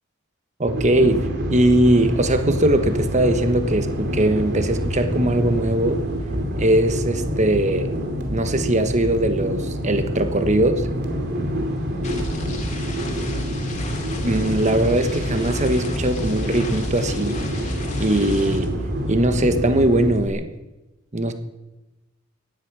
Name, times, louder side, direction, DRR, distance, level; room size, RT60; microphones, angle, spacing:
voice 1, 0.6-6.0 6.6-7.9 8.3-10.9 14.2-17.4 18.0-18.7 19.1-20.5 21.1-21.3, right 1 dB, 35° right, 9 dB, 1.3 m, -20 dB
sound 1, 0.6-20.1, equal, 60° right, 2.6 m, -26 dB
sound 2, 3.0-3.2 3.5-7.8 8.1-19.4 19.6-20.3, left 2 dB, 40° left, 2.6 m, -37 dB
17.5 x 12.0 x 6.2 m, 1.0 s
head